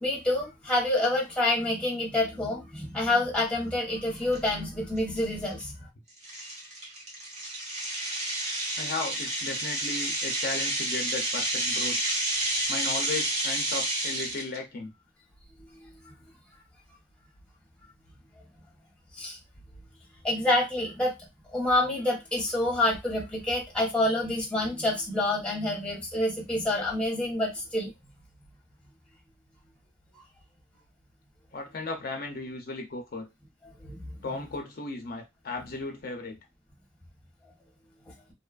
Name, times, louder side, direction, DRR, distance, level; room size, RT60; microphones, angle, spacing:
voice 1, 0.0-5.9 19.2-19.4 20.2-21.1 21.5-27.9 33.9-34.0, left 1 dB, 5° left, 0.9 m, -27 dB
sound 1, 4.3-4.4 5.0-5.2 5.6-5.7 6.2-14.6, right 1 dB, 40° right, 0.9 m, -30 dB
voice 2, 8.8-12.2 12.7-14.9 31.5-33.3 34.2-36.4, left 3 dB, 55° left, 0.5 m, -36 dB
2.7 x 2.3 x 2.3 m
head